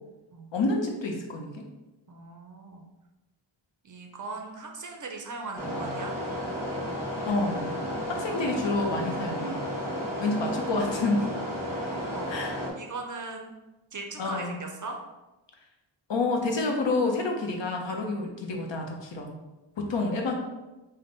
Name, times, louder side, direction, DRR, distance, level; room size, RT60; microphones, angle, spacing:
voice 1, 0.5-1.6 7.3-7.7 8.1-9.6 10.2-11.3 12.3-12.5 14.2-14.6 16.1-19.4 19.8-20.3, left 3 dB, 65° left, 2 dB, 0.8 m, -28 dB
voice 2, 2.1-2.8 3.8-6.1 8.3-8.4 9.9-10.4 11.8-12.3 12.7-13.5 13.9-15.0, right 3 dB, 40° right, 2 dB, 0.5 m, -39 dB
sound 1, 5.6-12.7, equal, 5° right, 1.1 m, -33 dB
5.1 x 2.2 x 3.9 m, 1.1 s
wide cardioid pair, 160°, 48 cm